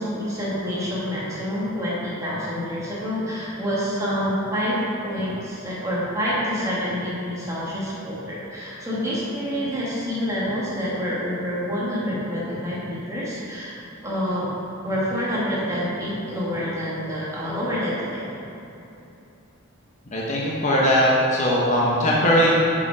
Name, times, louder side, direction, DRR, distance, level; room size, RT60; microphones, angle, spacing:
voice 1, 0.0-13.7 14.0-14.5 14.8-18.3, equal, 15° right, -7 dB, 1.6 m, -27 dB
voice 2, 20.1-22.5, equal, 35° left, -5 dB, 0.9 m, -19 dB
7.1 x 5.0 x 4.9 m, 2.9 s
head